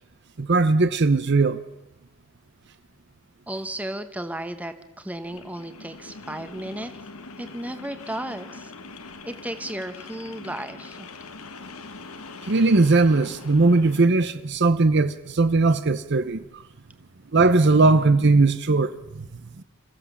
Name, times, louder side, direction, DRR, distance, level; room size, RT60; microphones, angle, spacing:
voice 1, 0.4-1.6 12.5-16.4 17.3-18.9 19.6-19.7, right 3 dB, 50° right, 0.7 m, -19 dB
voice 2, 3.5-6.9 7.4-8.7 9.2-11.1, right 1 dB, 5° right, 1.0 m, -34 dB
sound 1, 5.2-14.1, left 3 dB, 75° left, 1.4 m, -42 dB
27.0 x 15.0 x 7.2 m
head